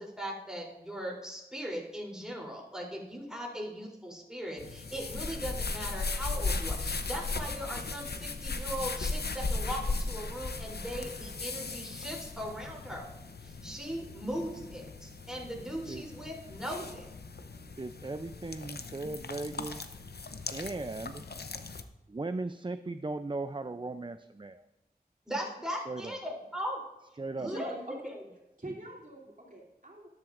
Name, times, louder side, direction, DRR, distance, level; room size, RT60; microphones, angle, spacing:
voice 1, 0.0-13.1 13.4-17.1 25.3-26.8 27.4-27.7, equal, 5° right, -2 dB, 3.3 m, -39 dB
sound 1, 4.6-21.8, left 3 dB, 85° left, 0.7 m, -37 dB
voice 2, 17.8-19.9 20.5-21.2 22.1-24.6 25.9-26.1 27.2-27.5, right 2 dB, 30° right, 10 dB, 0.4 m, -37 dB
voice 3, 27.4-28.1 28.6-30.1, right 2 dB, 55° right, -2 dB, 3.0 m, -43 dB
13.0 x 10.5 x 2.5 m, 1.0 s
wide cardioid pair, 40°, 16 cm